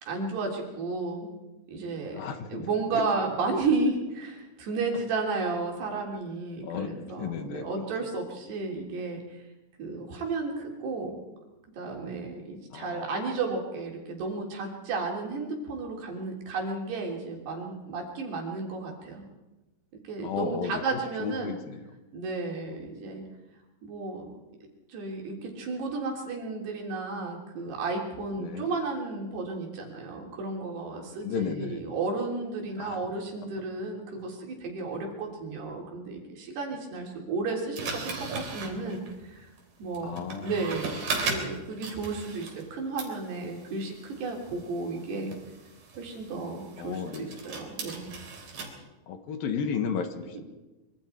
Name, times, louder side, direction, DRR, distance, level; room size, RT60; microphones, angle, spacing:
voice 1, 0.0-1.3 1.7-2.2 2.5-9.4 9.8-11.2 11.7-19.2 20.0-21.6 22.1-23.2 23.8-24.3 24.9-39.5 39.8-45.3 46.0-48.1 50.3-50.4, right 3 dB, 80° right, 0 dB, 5.5 m, -33 dB
voice 2, 2.1-2.7 2.9-3.1 6.6-7.8 12.7-13.1 20.2-21.8 28.4-28.7 31.2-31.8 32.8-33.0 40.0-40.5 46.8-47.4 49.1-50.4, left 6 dB, 70° left, 7 dB, 2.9 m, -34 dB
sound 1, 37.8-42.7 43.0-48.7, right 3 dB, 60° right, 5.2 m, -38 dB
25.0 x 25.0 x 4.6 m, 1.1 s
omnidirectional pair, 4.7 m